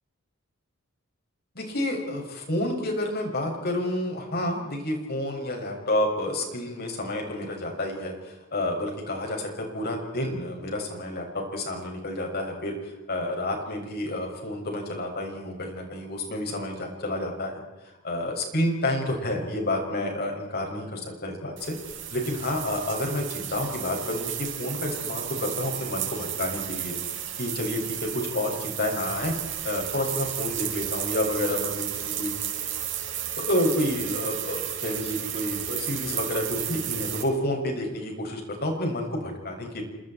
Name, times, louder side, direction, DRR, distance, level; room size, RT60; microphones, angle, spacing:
voice 1, 1.5-31.9 32.2-32.3 33.4-39.8, left 1 dB, 50° left, 1 dB, 6.7 m, -30 dB
sound 1, 21.6-37.2, right 11 dB, 65° right, 5.3 m, -33 dB
30.0 x 26.5 x 4.5 m, 1.1 s
head